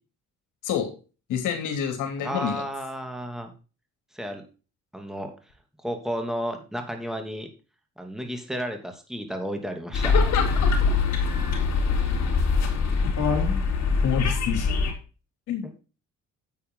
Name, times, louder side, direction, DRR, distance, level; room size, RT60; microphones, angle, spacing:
voice 1, 1.3-2.6 10.1-10.9 14.0-14.7 15.5-15.6, left 8 dB, 85° left, 4 dB, 3.2 m, -27 dB
voice 2, 2.2-3.5 4.1-4.4 4.9-5.3 5.8-7.5 8.0-10.1 12.0-12.1, equal, ahead, 5 dB, 2.8 m, -32 dB
sound 1, 9.9-14.9, left 4 dB, 60° left, 4.0 m, -23 dB
9.8 x 8.4 x 3.8 m, 0.34 s
cardioid pair, 90°, 30 cm